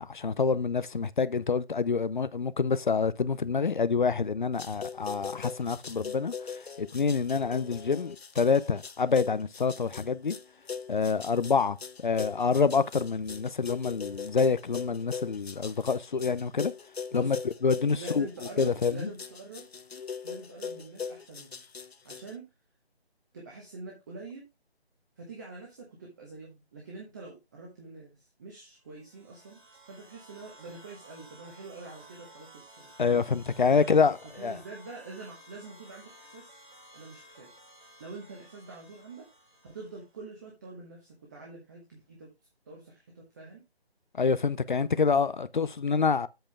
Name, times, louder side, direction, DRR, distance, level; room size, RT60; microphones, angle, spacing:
voice 1, 0.0-10.4 10.9-16.7 17.1-18.3 18.6-19.1 33.0-34.6 44.2-46.3, left 5 dB, 50° left, 0.6 m, -27 dB
sound 1, 4.6-22.3, left 6 dB, 70° left, 0.9 m, -40 dB
voice 2, 18.0-19.7 20.2-21.6 22.0-22.4 23.3-24.4 25.2-28.1 28.4-29.6 29.9-33.2 33.6-34.1 34.4-36.5 36.9-37.5 38.0-39.2 39.6-42.3 42.7-43.6, right 3 dB, 15° right, 1.1 m, -45 dB
sound 2, 28.9-40.1, right 1 dB, 50° right, 2.4 m, -54 dB
7.9 x 6.8 x 3.3 m
figure-of-eight pair, 160°, 32 cm